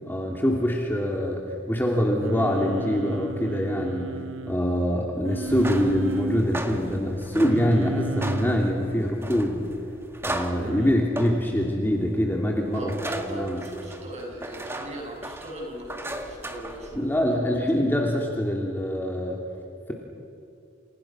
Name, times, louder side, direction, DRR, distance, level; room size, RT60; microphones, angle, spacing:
voice 1, 0.1-4.2 4.5-9.7 10.3-12.9 13.3-13.6 16.9-19.4, equal, 10° left, -1 dB, 2.9 m, -24 dB
Singing, 2.2-4.6 5.2-6.4 7.3-8.7 10.6-10.9, right 3 dB, 70° right, 0.8 m, -33 dB
sound 1, 5.4-17.3, right 1 dB, 15° right, 2.0 m, -37 dB
voice 2, 12.7-17.1, right 1 dB, 35° right, 0 dB, 7.2 m, -38 dB
30.0 x 29.0 x 6.2 m, 2.6 s
head